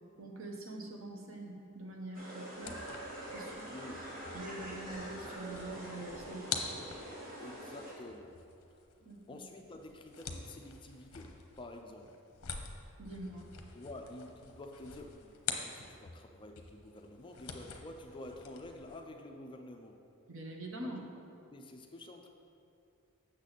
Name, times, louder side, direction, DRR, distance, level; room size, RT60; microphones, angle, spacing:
voice 1, 0.2-2.8 3.3-3.7 4.3-6.5 9.0-9.4 13.0-13.5 20.3-21.0, right 2 dB, 65° right, 1 dB, 1.0 m, -44 dB
sound 1, 2.1-7.9, right 1 dB, 40° right, 2.0 m, -45 dB
sound 2, 2.5-16.3 16.6-19.0, left 6 dB, 65° left, 0.8 m, -46 dB
voice 2, 3.6-4.1 7.3-8.4 9.3-12.2 13.7-20.0 20.8-21.2 21.5-22.3, left 1 dB, 20° left, 3 dB, 0.5 m, -49 dB
7.9 x 6.5 x 4.1 m, 2.5 s
head